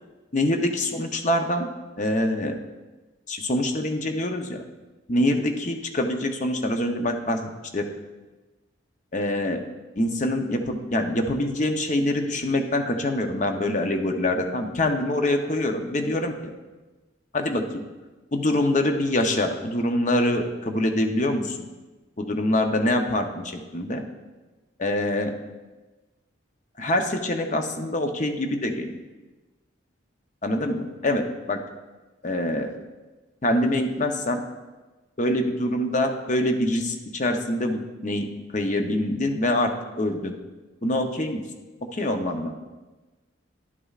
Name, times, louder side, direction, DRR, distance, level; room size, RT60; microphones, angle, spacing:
voice 1, 0.3-1.7 2.0-2.5 3.3-4.6 5.1-7.9 9.1-9.6 10.0-16.5 17.3-17.9 18.3-21.6 22.2-24.0 24.8-25.3 26.8-28.9 30.4-31.6 32.2-32.7 33.4-34.4 35.2-39.7 40.0-40.4 40.8-41.4 41.9-42.5, left 1 dB, 40° left, 5 dB, 0.7 m, -25 dB
11.0 x 8.4 x 2.4 m, 1.2 s
head